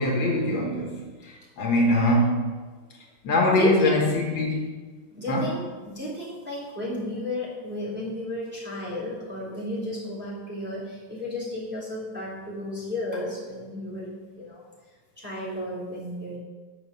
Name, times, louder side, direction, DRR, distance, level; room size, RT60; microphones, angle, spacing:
voice 1, 0.0-2.5 3.2-4.7 5.3-5.5, left 1 dB, 75° left, 0 dB, 2.0 m, -23 dB
voice 2, 3.5-4.1 5.1-14.6 15.2-16.4, left 1 dB, 5° right, -8 dB, 3.6 m, -33 dB
9.8 x 6.1 x 6.7 m, 1.4 s
omnidirectional pair, 2.1 m